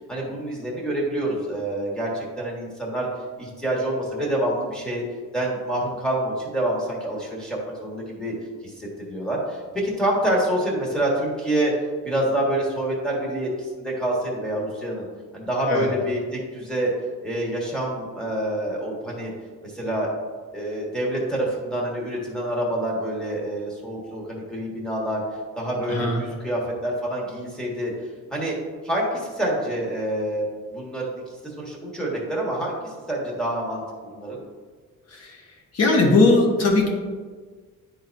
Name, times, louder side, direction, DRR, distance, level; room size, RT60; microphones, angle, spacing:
voice 1, 0.1-3.1 3.4-5.0 5.3-8.3 8.6-11.7 12.0-15.0 15.3-16.9 17.2-19.3 19.6-20.1 20.5-25.2 25.5-27.9 28.3-28.6 28.8-31.1 31.6-34.4, right 1 dB, ahead, -4 dB, 1.6 m, -27 dB
voice 2, 35.7-36.9, left 2 dB, 50° left, 0 dB, 1.3 m, -18 dB
11.0 x 3.9 x 2.7 m, 1.5 s
cardioid pair, 150°, 33 cm